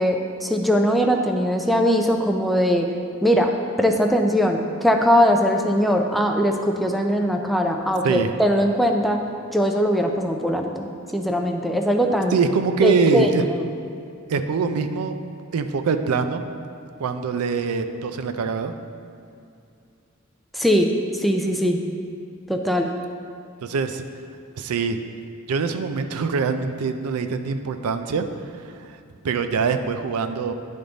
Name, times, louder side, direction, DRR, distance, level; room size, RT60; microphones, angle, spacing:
voice 1, 0.0-2.9 3.2-3.5 3.8-9.2 9.5-12.3 12.8-13.7 20.5-21.9 22.5-22.9, equal, ahead, 3 dB, 0.3 m, -21 dB
voice 2, 12.3-13.4 14.3-15.2 15.5-16.4 17.0-18.8 23.6-24.0 24.6-25.0 25.5-28.3 28.5-28.8 29.2-30.5, right 5 dB, 85° right, 8 dB, 0.4 m, -23 dB
10.0 x 3.5 x 3.9 m, 2.5 s
head